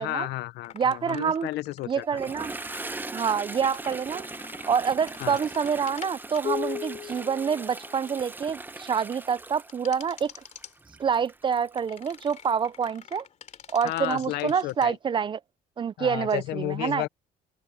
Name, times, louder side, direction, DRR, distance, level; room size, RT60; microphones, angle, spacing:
voice 1, 0.0-2.1 5.2-5.4 13.8-15.0 16.0-17.1, left 17 dB, 75° left, 0.6 m, -32 dB
sound 1, 0.6-8.4 9.7-10.7 11.8-14.9, left 7 dB, 45° left, 2.7 m, -41 dB
voice 2, 0.7-1.5 1.9-2.5 3.1-4.2 4.7-10.3 11.0-13.3 13.7-15.4 15.8-17.0, right 7 dB, 30° right, 0.4 m, -27 dB
Toilet flush, 2.0-12.6, right 2 dB, 10° right, 0.8 m, -40 dB
open air
cardioid pair, 110°, 17 cm